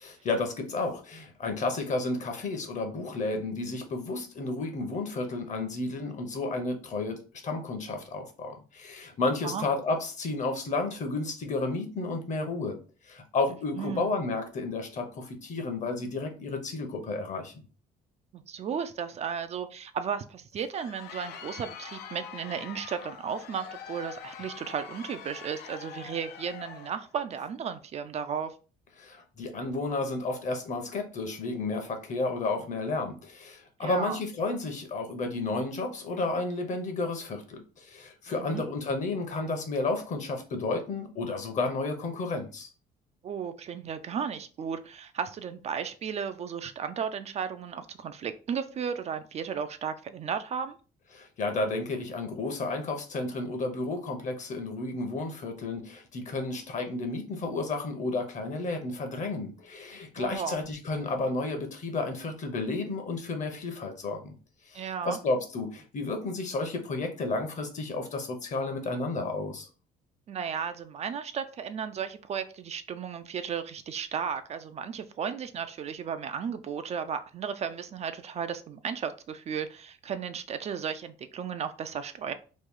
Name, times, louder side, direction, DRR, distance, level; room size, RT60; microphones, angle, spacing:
voice 1, 0.0-12.8 13.0-17.5 29.0-42.7 51.1-64.3 64.7-69.7, left 3 dB, 45° left, 5 dB, 0.9 m, -32 dB
voice 2, 13.8-14.1 18.3-28.5 33.8-34.2 38.3-38.6 43.2-50.8 60.2-60.6 64.7-65.2 70.3-82.3, right 7 dB, 40° right, 10 dB, 0.4 m, -34 dB
Crowd, 20.5-27.1, left 8 dB, 75° left, 0.6 m, -44 dB
3.1 x 2.3 x 3.6 m, 0.36 s
cardioid pair, 110°, 17 cm